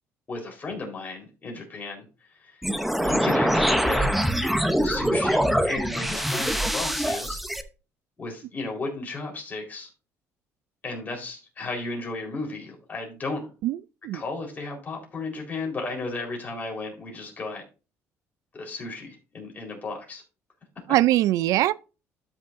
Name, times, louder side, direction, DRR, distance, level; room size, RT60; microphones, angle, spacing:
voice 1, 0.3-2.0 2.4-2.6 3.0-4.1 4.8-7.4 8.2-9.9 10.8-13.5 14.1-17.6 18.5-20.2, left 3 dB, 30° left, 4.0 m, -34 dB
sound 1, 2.6-7.6, equal, ahead, 0.7 m, -24 dB
voice 2, 13.6-14.2 20.9-21.7, right 15 dB, 70° right, 0.3 m, -22 dB
12.5 x 6.3 x 2.6 m
cardioid pair, 115°, 6 cm